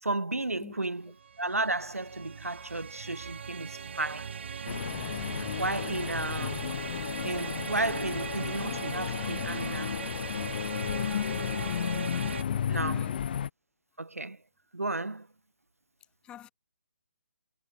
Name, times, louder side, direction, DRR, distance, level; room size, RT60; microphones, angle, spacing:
voice 1, 0.0-4.3 5.4-6.8 7.2-10.0 12.7-13.1 14.0-14.4 14.7-15.3, right 2 dB, 80° right, 3.5 m, -33 dB
sound 1, 1.0-12.4, right 6 dB, 50° right, 1.7 m, -40 dB
sound 2, 4.7-13.5, left 8 dB, 40° left, 2.0 m, -33 dB
voice 2, 12.5-13.2 16.2-16.5, left 11 dB, 10° left, 3.5 m, -47 dB
figure-of-eight pair, 140°, 8 cm